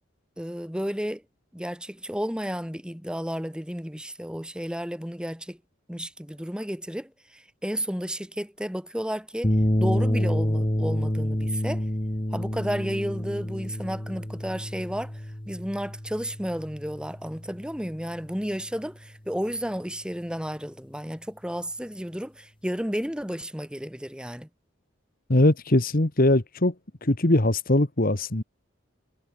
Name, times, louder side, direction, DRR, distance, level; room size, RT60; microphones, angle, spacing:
voice 1, 0.4-1.2 1.5-5.6 5.9-11.9 12.3-24.5, equal, 5° right, 6.4 m, -32 dB
sound 1, 9.4-17.9, equal, 25° left, 2.1 m, -28 dB
voice 2, 25.3-26.7 27.0-28.4, left 1 dB, 45° left, 1.6 m, -21 dB
head